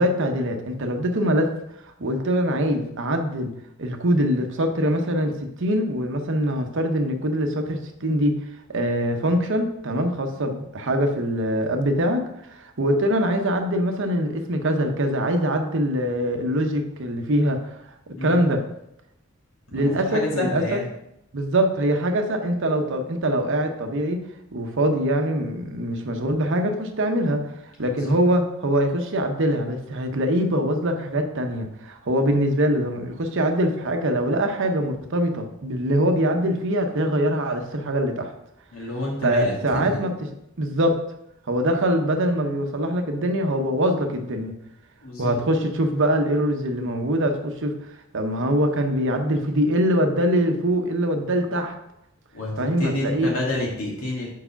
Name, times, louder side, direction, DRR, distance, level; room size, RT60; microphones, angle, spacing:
voice 1, 0.0-1.5 2.0-3.5 3.8-8.4 8.7-17.8 18.1-18.6 19.7-20.8 21.3-24.2 24.5-27.4 27.8-38.3 39.2-40.1 40.6-41.0 41.5-44.5 45.2-47.8 48.1-51.7 52.6-53.3, equal, 60° right, 5 dB, 0.8 m, -23 dB
voice 2, 19.7-20.9 27.8-28.2 38.7-40.0 45.0-45.3 52.3-54.3, left 1 dB, 75° left, -3 dB, 2.2 m, -29 dB
4.9 x 4.7 x 5.6 m, 0.82 s
head